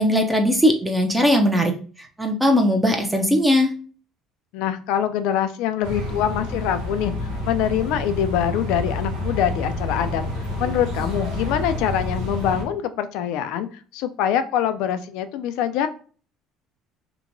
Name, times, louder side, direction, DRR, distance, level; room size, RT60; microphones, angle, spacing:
voice 1, 0.0-1.8 2.2-3.7, equal, 10° right, 3 dB, 0.6 m, -19 dB
voice 2, 4.5-10.2 10.6-15.9, left 9 dB, 75° left, 10 dB, 0.3 m, -24 dB
sound 1, 5.8-12.6, left 1 dB, 85° right, 0.8 m, -29 dB
2.8 x 2.2 x 2.6 m, 0.40 s
supercardioid pair, 80°, 0 cm